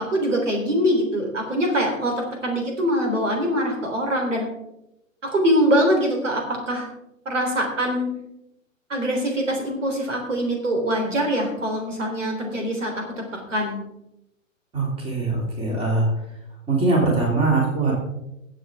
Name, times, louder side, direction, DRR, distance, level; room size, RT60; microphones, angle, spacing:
voice 1, 0.0-4.5 5.2-6.9 7.3-8.1 8.9-13.0 13.3-13.8, equal, 65° right, 2 dB, 3.8 m, -23 dB
voice 2, 14.7-16.1 16.7-17.9, right 3 dB, 15° right, -1 dB, 3.0 m, -22 dB
21.5 x 7.7 x 3.6 m, 0.85 s
figure-of-eight pair, 120°, 40 cm